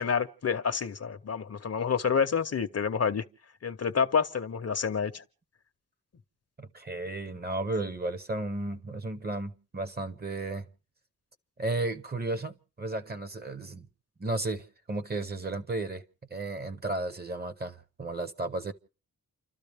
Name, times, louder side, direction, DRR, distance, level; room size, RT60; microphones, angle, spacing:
voice 1, 0.0-3.2 3.6-5.2, left 6 dB, 45° left, 0.7 m, -28 dB
voice 2, 6.6-10.7 11.6-13.9 14.2-16.0 16.3-18.7, right 2 dB, 25° right, 0.8 m, -34 dB
29.5 x 13.0 x 3.4 m
wide cardioid pair, 165°, 36 cm